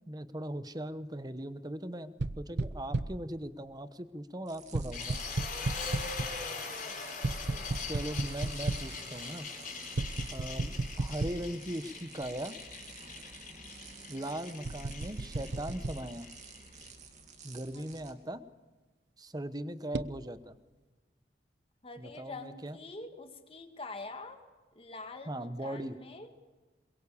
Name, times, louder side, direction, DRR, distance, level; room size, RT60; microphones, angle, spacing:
voice 1, 0.1-5.2 7.9-9.5 10.3-12.6 14.1-16.3 17.4-18.4 19.2-20.6 22.0-22.8 25.3-25.9, right 1 dB, 25° right, 13 dB, 1.1 m, -39 dB
sound 1, 2.2-3.3 4.7-6.5 7.2-9.0 10.0-11.6 12.2-12.3 14.6-16.0 19.9-20.1, right 2 dB, 70° right, 0.8 m, -34 dB
sound 2, 4.5-18.1, right 5 dB, 45° right, 2.6 m, -52 dB
sound 3, 4.9-16.9, left 5 dB, 50° left, 4.3 m, -42 dB
voice 2, 5.9-7.1 7.4-7.8 17.7-17.9 21.8-24.4 24.7-26.3, left 2 dB, 35° left, 6 dB, 2.0 m, -46 dB
22.5 x 22.5 x 7.0 m, 1.3 s
head